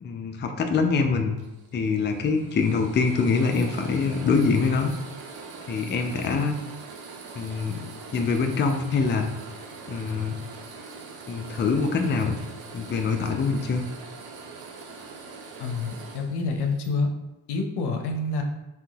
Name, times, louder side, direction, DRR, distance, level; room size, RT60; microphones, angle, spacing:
voice 1, 0.0-1.4 1.7-4.9 5.7-6.5 7.4-7.8 8.1-9.3 9.9-10.4 11.3-12.4 12.7-13.8, left 4 dB, 30° left, 4 dB, 0.4 m, -24 dB
sound 1, 1.4-16.9, right 4 dB, 65° right, 0.7 m, -42 dB
voice 2, 15.6-17.1 17.5-18.4, left 3 dB, 80° left, 4 dB, 0.6 m, -27 dB
3.6 x 2.7 x 2.3 m, 0.99 s
cardioid pair, 70°, 39 cm